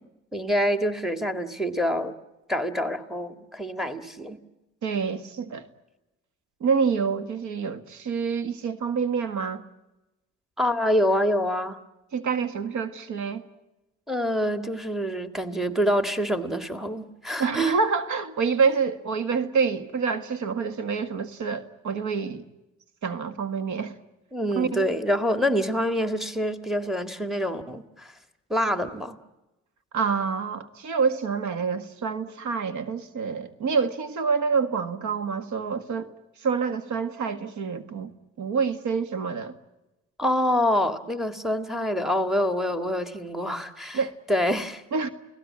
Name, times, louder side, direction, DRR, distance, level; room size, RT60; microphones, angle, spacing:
voice 1, 0.3-2.1 2.5-4.4 10.6-11.8 14.1-17.8 24.3-28.1 28.5-29.2 40.2-44.0 44.3-44.8, equal, ahead, 1.9 m, -26 dB
voice 2, 4.8-5.7 6.6-9.6 12.1-13.4 17.4-22.4 23.0-23.9 24.6-24.9 29.9-36.1 36.4-38.1 38.4-39.5 43.9-44.1 44.9-45.1, right 5 dB, 75° right, 1.8 m, -27 dB
30.0 x 18.0 x 8.7 m
cardioid pair, 90°, 30 cm